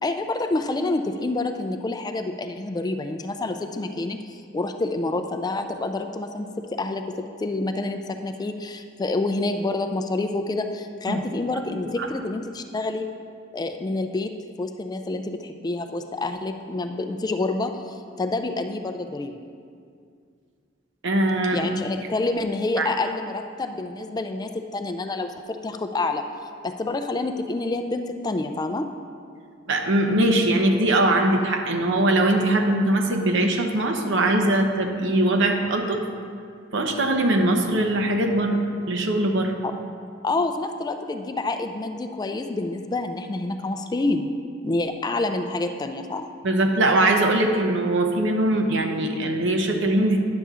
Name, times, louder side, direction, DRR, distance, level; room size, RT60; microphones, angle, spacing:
voice 1, 0.0-7.0 7.4-13.0 13.5-14.3 14.6-19.3 21.5-26.2 26.6-28.9 39.6-39.7 40.2-44.3 44.6-46.3, left 2 dB, 20° left, 7 dB, 0.3 m, -28 dB
voice 2, 21.0-21.7 22.8-22.9 29.7-36.0 36.7-38.6 38.9-39.6 46.4-50.2, right 1 dB, 65° right, 3 dB, 0.9 m, -21 dB
9.8 x 6.9 x 3.6 m, 2.2 s
head